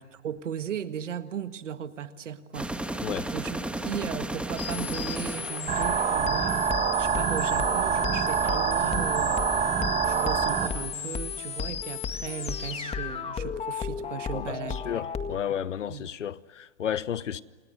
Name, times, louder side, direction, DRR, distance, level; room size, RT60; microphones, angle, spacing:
voice 1, 0.0-6.6 7.0-9.5 10.0-15.0 15.9-16.1, right 8 dB, 85° right, 1.8 m, -37 dB
sound 1, 2.5-6.6, right 1 dB, 5° right, 1.6 m, -34 dB
sound 2, 4.6-15.4, left 7 dB, 15° left, 1.9 m, -34 dB
sound 3, 5.7-10.7, right 7 dB, 20° right, 1.6 m, -26 dB
voice 2, 14.3-17.4, left 9 dB, 90° left, 1.1 m, -32 dB
28.5 x 28.5 x 6.5 m
hypercardioid pair, 115°, 36 cm